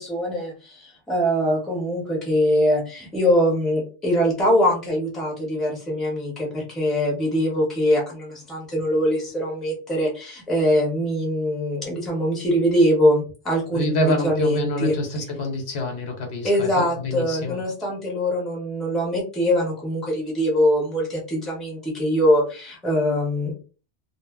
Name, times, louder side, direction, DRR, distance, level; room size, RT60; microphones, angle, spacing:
voice 1, 0.0-14.9 16.4-23.5, equal, ahead, -2 dB, 0.7 m, -23 dB
voice 2, 13.7-17.6, left 1 dB, 70° left, 3 dB, 1.0 m, -26 dB
2.0 x 2.0 x 3.4 m, 0.35 s
omnidirectional pair, 1.2 m